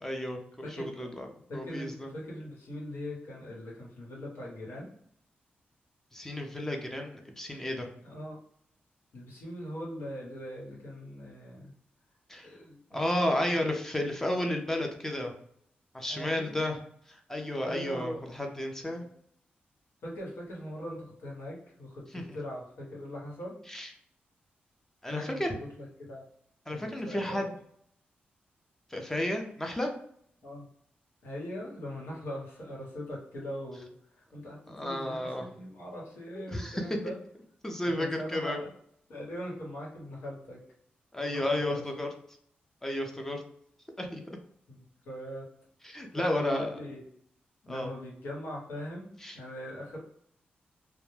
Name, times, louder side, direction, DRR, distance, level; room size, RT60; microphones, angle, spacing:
voice 1, 0.0-2.1 6.1-7.9 12.3-12.5 12.9-15.3 15.9-16.8 17.1-19.0 22.1-22.2 23.7-23.9 25.0-25.5 26.7-27.5 28.9-29.9 34.7-35.5 36.4-37.0 37.6-38.6 41.1-42.1 42.8-43.4 44.0-44.2 45.8-46.8 47.7-47.9 49.2-49.4, left 1 dB, 10° left, 2 dB, 0.5 m, -32 dB
voice 2, 0.6-1.1 1.5-4.9 8.0-8.4 9.1-11.7 12.4-13.7 16.1-16.7 17.6-18.2 18.8-19.1 20.0-23.6 25.1-26.3 26.7-27.4 30.4-30.7 31.2-37.2 38.0-38.7 39.1-40.6 41.2-41.8 44.7-45.4 46.1-47.0 47.6-50.0, equal, 85° left, -4 dB, 1.1 m, -41 dB
2.1 x 2.1 x 3.1 m, 0.66 s
cardioid pair, 85°, 4 cm